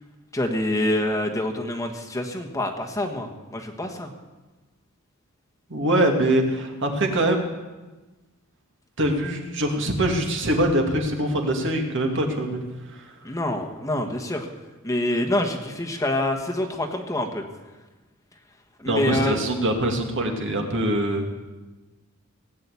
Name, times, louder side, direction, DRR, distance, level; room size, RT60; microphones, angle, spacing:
voice 1, 0.3-4.1 13.2-14.5 14.8-17.4 18.8-19.4, left 1 dB, 15° left, 3 dB, 1.3 m, -26 dB
voice 2, 5.7-7.5 9.0-12.6 12.9-13.1 18.9-21.3, right 1 dB, 60° right, 3 dB, 2.3 m, -23 dB
18.0 x 8.7 x 8.4 m, 1.2 s
head